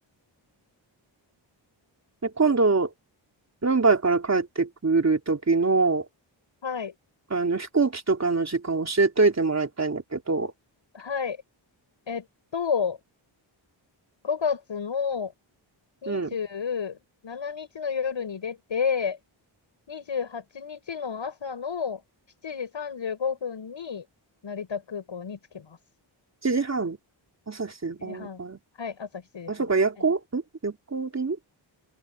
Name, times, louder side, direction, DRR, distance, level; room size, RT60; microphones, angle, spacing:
voice 1, 2.2-2.9 3.6-6.0 7.3-10.5 16.1-16.3 26.4-27.0 27.5-28.6 29.5-31.4, right 4 dB, 35° right, 3.4 m, -24 dB
voice 2, 6.6-6.9 10.9-11.4 12.1-12.2 12.5-13.0 14.2-15.3 16.0-17.0 17.2-19.2 19.9-22.0 22.4-24.0 24.4-25.8 28.0-28.4 28.8-29.6 30.0-30.1, left 6 dB, 70° left, 7.5 m, -31 dB
open air
wide cardioid pair, 95°, 46 cm